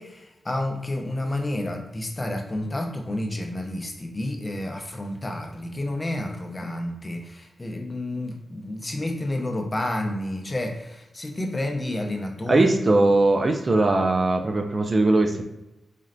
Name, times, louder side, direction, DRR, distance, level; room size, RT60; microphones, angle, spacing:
voice 1, 0.0-12.7, left 1 dB, 25° left, 2 dB, 0.6 m, -30 dB
voice 2, 12.5-15.4, right 2 dB, 35° right, 5 dB, 0.4 m, -20 dB
4.2 x 3.0 x 2.6 m, 0.95 s
cardioid pair, 95°, 0 cm